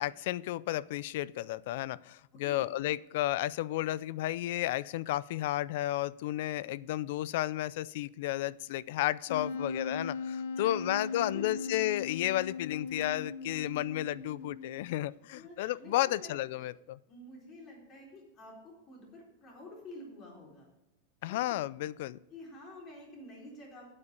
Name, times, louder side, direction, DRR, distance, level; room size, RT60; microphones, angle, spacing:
voice 1, 0.0-17.0 21.2-22.2, left 15 dB, 55° left, 20 dB, 0.3 m, -33 dB
voice 2, 2.3-2.7 9.4-9.9 10.6-11.9 15.3-16.3 17.0-20.7 21.3-21.6 22.3-23.9, left 1 dB, 25° left, -2 dB, 4.0 m, -49 dB
Wind instrument woodwind instrument, 9.3-15.0, left 4 dB, 75° left, 0.8 m, -38 dB
8.7 x 8.3 x 6.8 m, 0.95 s
supercardioid pair, 170°, 0 cm